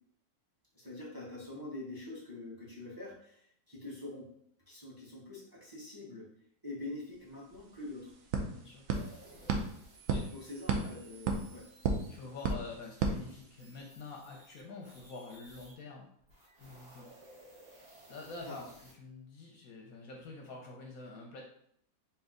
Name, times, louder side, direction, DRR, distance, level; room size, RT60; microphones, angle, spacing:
voice 1, 0.7-4.3 4.7-6.3 6.6-8.1 10.3-11.7 18.4-18.7, left 2 dB, 15° right, -5 dB, 0.8 m, -45 dB
sound 1, 7.2-7.3 7.5-14.0, right 4 dB, 80° right, 0.7 m, -36 dB
voice 2, 8.4-8.9 10.1-10.3 10.8-10.9 12.1-16.1 16.6-17.1 18.1-21.4, left 3 dB, 65° left, 0 dB, 0.9 m, -47 dB
sound 2, 8.9-15.7 16.2-18.9, right 1 dB, 55° right, 2.2 m, -58 dB
4.4 x 2.8 x 3.7 m, 0.68 s
omnidirectional pair, 2.1 m